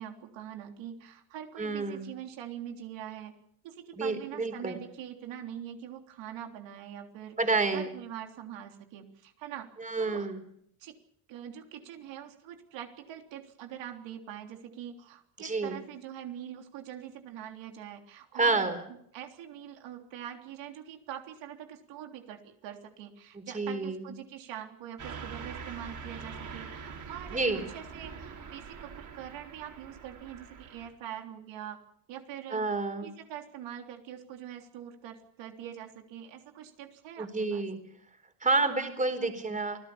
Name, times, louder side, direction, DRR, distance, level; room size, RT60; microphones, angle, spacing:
voice 1, 0.0-3.3 3.6-7.4 7.7-9.7 10.0-10.3 10.8-11.0 11.3-18.7 19.1-31.8 32.1-32.6 33.0-37.6, right 10 dB, 70° right, 4 dB, 3.6 m, -43 dB
voice 2, 1.6-2.0 4.0-4.8 7.4-7.9 9.8-10.4 15.4-15.8 18.3-18.8 23.3-24.1 27.3-27.6 32.5-33.1 37.2-37.8 38.4-39.8, right 3 dB, 15° right, 8 dB, 4.1 m, -29 dB
Car passing by / Truck, 25.0-30.9, right 5 dB, 40° right, 5.2 m, -44 dB
27.5 x 17.5 x 7.1 m, 0.70 s
cardioid pair, 115°, 45 cm